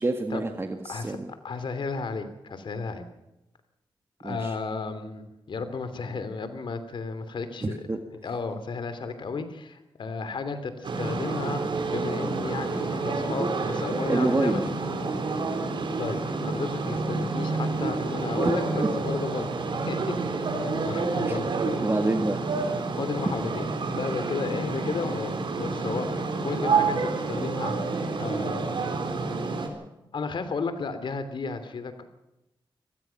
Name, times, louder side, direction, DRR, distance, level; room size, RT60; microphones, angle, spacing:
voice 1, 0.0-1.3 4.2-4.6 7.6-8.0 14.1-14.7 18.4-18.5 18.8-18.9 21.2-21.4 21.8-22.4, right 2 dB, 30° right, 6 dB, 1.7 m, -27 dB
voice 2, 1.4-3.0 4.2-7.8 8.2-11.6 11.9-14.7 16.0-20.2 20.5-21.5 23.0-23.7 24.0-27.7 28.2-29.0 30.1-32.0, left 4 dB, 70° left, 10 dB, 2.9 m, -33 dB
sound 1, 10.8-29.7, right 3 dB, 65° right, 4.1 m, -29 dB
25.0 x 18.0 x 5.8 m, 0.93 s
wide cardioid pair, 95°, 9 cm